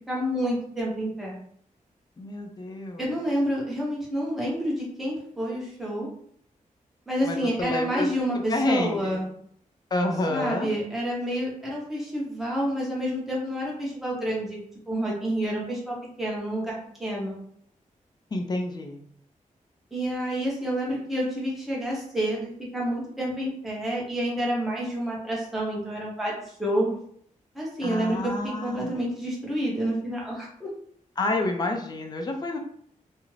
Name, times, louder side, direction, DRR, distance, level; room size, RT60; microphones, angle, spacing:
voice 1, 0.1-1.3 3.0-6.1 7.1-9.3 10.3-14.6 14.9-17.4 19.9-26.9 27.5-30.7, equal, ahead, -5 dB, 0.8 m, -29 dB
voice 2, 2.2-3.1 7.2-8.1 8.5-9.2 9.9-10.7 18.3-19.0 27.8-29.0 31.2-32.6, left 2 dB, 30° left, 3 dB, 0.4 m, -29 dB
2.4 x 2.0 x 3.1 m, 0.63 s
wide cardioid pair, 155°, 14 cm